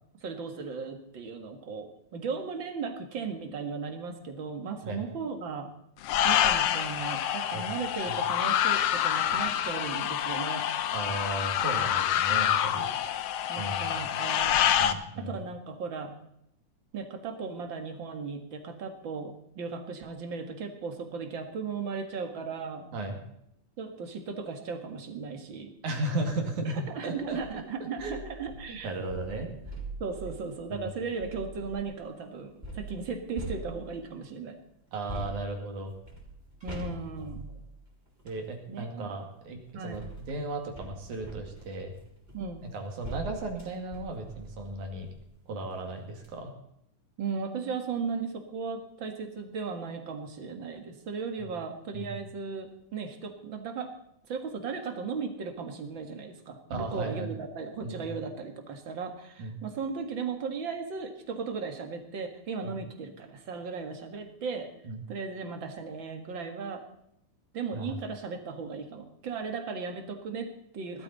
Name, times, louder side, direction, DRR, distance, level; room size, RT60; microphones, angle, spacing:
voice 1, 0.2-5.7 6.2-10.7 13.5-14.6 15.2-16.1 16.9-22.9 23.8-25.7 26.7-28.9 29.4-29.6 30.0-34.6 36.6-37.4 38.7-39.1 39.7-40.0 42.3-42.6 47.2-53.9 54.3-64.7 65.1-66.8 67.5-71.0, right 5 dB, 45° right, 5 dB, 2.0 m, -36 dB
sound 1, 6.0-14.9, left 10 dB, 70° left, 1.5 m, -27 dB
voice 2, 10.9-13.3 13.6-14.1 14.8-15.4 22.9-23.2 25.8-27.4 28.0-28.2 28.7-29.5 30.7-30.9 34.9-35.9 37.2-37.3 38.2-41.9 42.7-45.1 45.5-46.5 51.9-52.1 56.7-57.3 57.8-58.2 59.4-59.6 62.6-62.8 64.8-65.0 67.7-68.0, right 2 dB, 70° right, 3 dB, 3.7 m, -35 dB
sound 2, 27.2-27.5 28.0-32.0 32.6-34.2 35.1-38.4 39.4-45.3 45.7-45.8 46.1-46.3, right 2 dB, 15° right, 3.7 m, -43 dB
19.0 x 12.5 x 4.1 m, 0.76 s
omnidirectional pair, 3.6 m